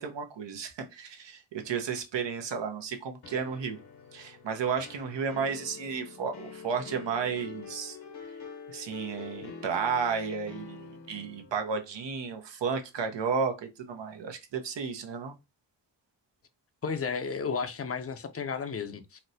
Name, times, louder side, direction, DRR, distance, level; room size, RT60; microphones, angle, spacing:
voice 1, 0.0-3.8 4.1-8.0 8.7-15.3, right 6 dB, 80° right, 0.8 m, -33 dB
sound 1, 3.2-11.5, left 5 dB, 65° left, 0.9 m, -46 dB
voice 2, 16.8-19.2, left 5 dB, 35° left, 0.5 m, -33 dB
4.1 x 2.1 x 2.6 m
cardioid pair, 70°, 43 cm